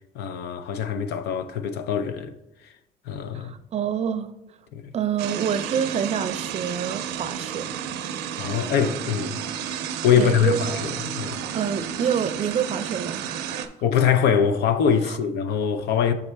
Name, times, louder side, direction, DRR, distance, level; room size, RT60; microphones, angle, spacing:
voice 1, 0.1-2.4 3.1-3.5 4.7-4.9 8.4-9.4 9.7-11.4 13.8-16.1, left 7 dB, 75° left, 0.6 m, -23 dB
voice 2, 3.3-4.3 4.9-7.7 8.5-8.6 10.2-10.8 11.5-13.7 15.0-15.2, right 8 dB, 40° right, 0.5 m, -27 dB
sound 1, 5.2-13.7, right 9 dB, 90° right, 0.5 m, -32 dB
7.0 x 4.2 x 3.4 m
cardioid pair, 110°, 17 cm